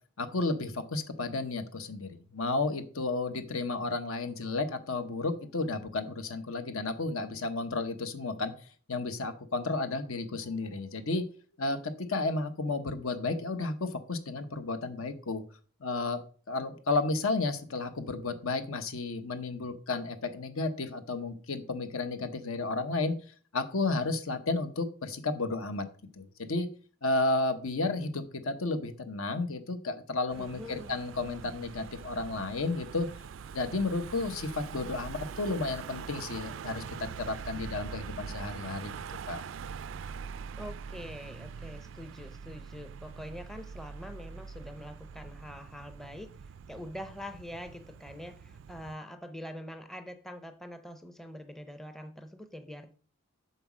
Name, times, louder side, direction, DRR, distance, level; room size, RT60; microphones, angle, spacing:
voice 1, 0.2-8.5 8.9-11.2 11.6-15.4 15.8-16.2 16.5-23.2 23.5-25.9 26.2-26.7 27.0-33.1 33.5-38.9 39.3-39.4, left 3 dB, 75° left, 9 dB, 1.0 m, -32 dB
Car passing by / Engine, 30.3-49.0, right 6 dB, 60° right, 0.3 m, -43 dB
voice 2, 30.4-30.9 40.6-52.9, equal, ahead, 8 dB, 0.5 m, -44 dB
7.9 x 4.1 x 6.1 m, 0.42 s
head